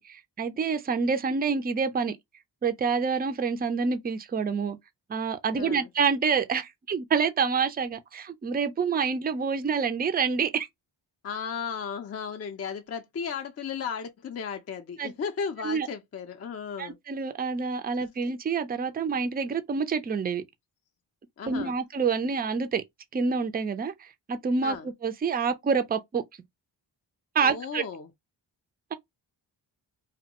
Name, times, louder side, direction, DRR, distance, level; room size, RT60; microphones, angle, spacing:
voice 1, 0.0-2.2 2.6-4.8 5.1-10.7 15.0-15.1 15.6-15.9 16.8-20.4 21.5-22.8 23.1-24.8 25.0-26.2 27.4-27.8, right 5 dB, 20° right, 0.4 m, -27 dB
voice 2, 5.5-5.9 11.2-17.0 21.4-21.7 24.6-24.9 27.4-28.1, left 6 dB, 35° left, 0.5 m, -35 dB
2.3 x 2.1 x 2.8 m
cardioid pair, 40°, 46 cm